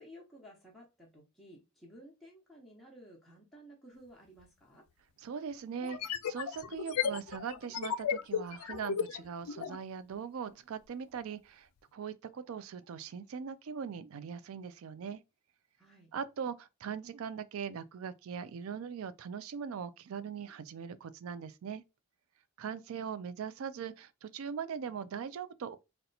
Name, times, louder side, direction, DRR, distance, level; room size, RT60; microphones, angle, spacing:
voice 1, 0.0-4.9 15.8-16.1, equal, ahead, 0.8 m, -55 dB
sound 1, 4.4-4.5 5.8-9.8, left 7 dB, 90° left, 0.4 m, -35 dB
voice 2, 5.2-15.2 16.1-21.8 22.6-25.8, right 7 dB, 75° right, 0.4 m, -40 dB
2.8 x 2.2 x 3.9 m
head